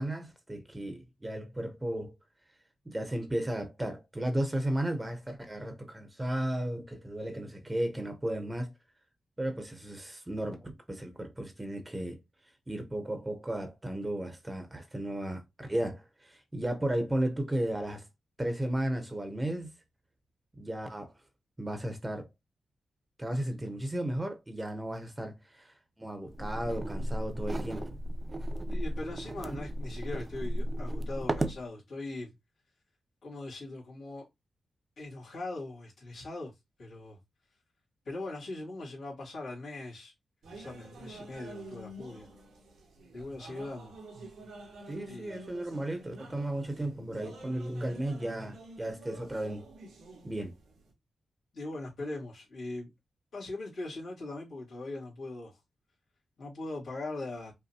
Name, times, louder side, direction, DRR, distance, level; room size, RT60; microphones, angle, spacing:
voice 1, 0.0-2.1 2.9-8.7 9.4-12.2 12.7-18.0 18.4-19.7 20.6-21.1 21.6-22.3 23.2-28.0 44.9-49.6 50.2-50.5, right 1 dB, 20° right, 0.9 m, -34 dB
sound 1, 26.3-31.6, right 1 dB, 35° right, 0.5 m, -34 dB
voice 2, 28.7-32.3 33.2-34.3 35.0-36.5 36.8-37.2 38.0-40.1 40.5-42.3 43.1-43.9 45.1-45.4 51.5-52.9 53.3-55.6 56.4-57.5, left 2 dB, 75° left, 2.3 m, -40 dB
sound 2, 40.4-50.9, right 2 dB, 90° right, 1.5 m, -49 dB
5.4 x 2.1 x 2.9 m
cardioid pair, 50°, 0 cm